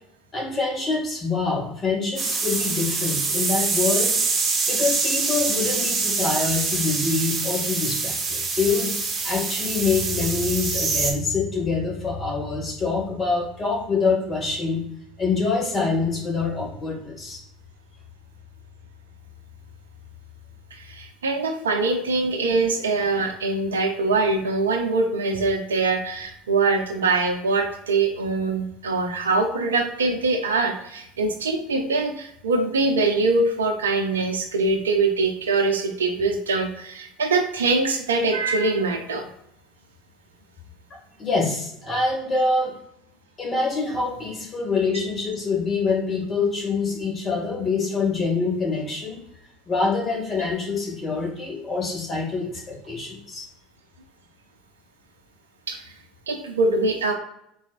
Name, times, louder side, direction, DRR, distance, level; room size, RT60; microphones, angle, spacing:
voice 1, 0.3-4.2 4.7-14.8 15.2-17.4 41.2-42.7 43.4-49.2 49.7-53.5, left 4 dB, 35° left, -1 dB, 1.6 m, -25 dB
sound 1, 2.2-11.1, right 4 dB, 35° right, 1.0 m, -25 dB
voice 2, 20.7-39.3 55.7-55.8 56.3-57.1, right 3 dB, 85° right, 4 dB, 0.6 m, -23 dB
4.1 x 4.1 x 2.4 m, 0.75 s
hypercardioid pair, 70°, 0 cm